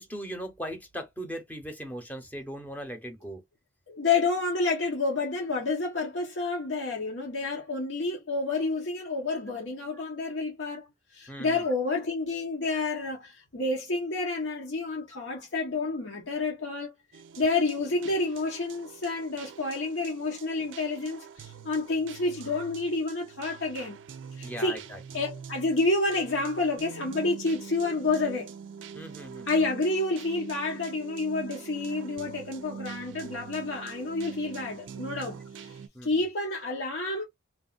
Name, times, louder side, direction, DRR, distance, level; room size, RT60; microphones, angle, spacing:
voice 1, 0.0-3.4 11.3-11.7 24.4-25.0 28.9-29.5 35.9-36.2, equal, 10° left, 0.7 m, -39 dB
voice 2, 3.9-10.8 11.1-16.9 17.4-24.0 24.4-24.8 25.1-28.5 29.5-35.7 36.0-37.2, left 3 dB, 85° left, 0.9 m, -29 dB
sound 1, 17.1-35.9, right 6 dB, 85° right, 0.4 m, -44 dB
3.2 x 2.3 x 2.2 m
head